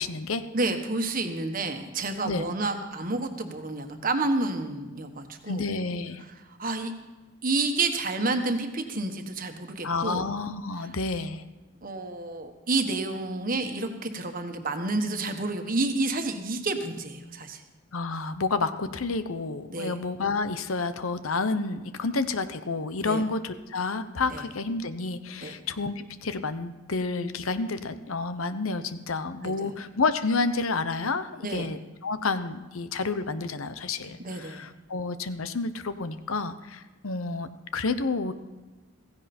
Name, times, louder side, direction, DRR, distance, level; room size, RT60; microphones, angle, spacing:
voice 1, 0.0-0.4 2.2-2.4 5.5-6.2 9.8-11.4 17.9-38.3, left 3 dB, 85° left, 11 dB, 0.9 m, -30 dB
voice 2, 0.5-5.7 6.6-6.9 7.4-10.3 11.8-17.6 19.7-19.9 23.0-23.3 24.3-24.4 25.4-25.5 29.4-29.7 31.4-31.7 34.2-34.6, right 2 dB, 40° right, 6 dB, 1.4 m, -29 dB
16.0 x 15.5 x 4.3 m, 1.2 s
head